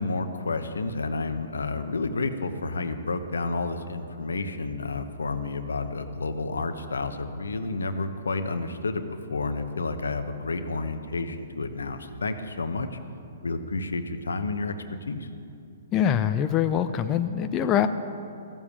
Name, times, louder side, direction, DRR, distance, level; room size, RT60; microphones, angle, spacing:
voice 1, 0.0-9.0 9.3-13.0 13.4-14.7 15.1-15.3, left 3 dB, 90° left, 8 dB, 0.9 m, -30 dB
voice 2, 15.9-17.9, left 9 dB, 25° left, 9 dB, 0.5 m, -24 dB
14.5 x 7.3 x 8.6 m, 2.6 s
hypercardioid pair, 135°, 0 cm